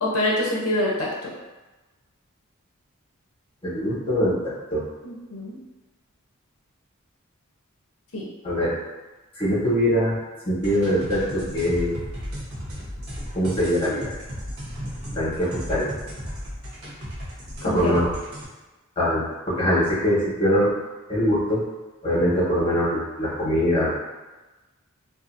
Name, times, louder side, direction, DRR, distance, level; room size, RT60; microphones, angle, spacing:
voice 1, 0.0-1.3 5.0-5.6 8.1-8.3 17.6-18.0, left 1 dB, 80° left, -3 dB, 0.7 m, -26 dB
voice 2, 3.6-4.8 8.4-8.7 9.3-10.2 10.4-12.0 13.3-14.2 15.1-15.9 17.6-18.1 19.0-20.7 21.1-21.6 22.0-24.0, equal, 25° left, -9 dB, 1.1 m, -23 dB
sound 1, 10.6-18.5, equal, 70° right, 0.8 m, -35 dB
2.5 x 2.5 x 2.6 m, 1.1 s
head